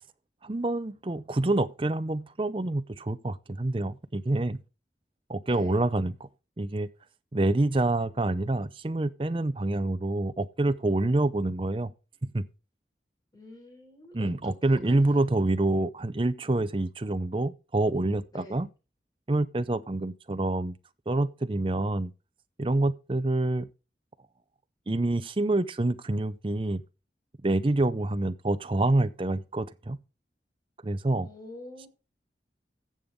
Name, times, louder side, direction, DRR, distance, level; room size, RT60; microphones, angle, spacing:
voice 1, 0.4-4.6 5.3-6.3 6.6-6.9 7.3-11.9 12.3-12.4 14.1-18.7 19.3-20.7 21.1-22.1 22.6-23.7 24.9-26.8 27.4-30.0 30.8-31.3, right 2 dB, 30° right, 0.6 m, -27 dB
voice 2, 5.5-5.8 13.3-15.0 18.3-18.6 31.2-31.9, left 1 dB, 20° left, 4.3 m, -46 dB
15.0 x 7.0 x 3.7 m
head